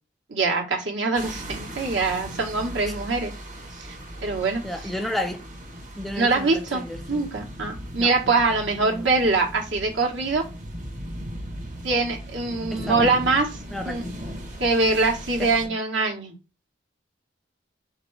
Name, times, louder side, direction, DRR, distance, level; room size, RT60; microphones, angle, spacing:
voice 1, 0.3-3.3 3.8-3.9 4.2-4.6 6.1-10.4 11.8-13.6 13.8-14.0 14.6-16.3, right 3 dB, 70° right, 1.4 m, -23 dB
sound 1, 1.1-15.7, equal, 40° right, 1.0 m, -38 dB
voice 2, 4.6-5.4 6.0-7.3 8.0-8.1 8.9-9.1 12.7-13.1 13.7-14.3 15.4-15.5, left 1 dB, ahead, 0.4 m, -32 dB
4.0 x 3.6 x 3.2 m
head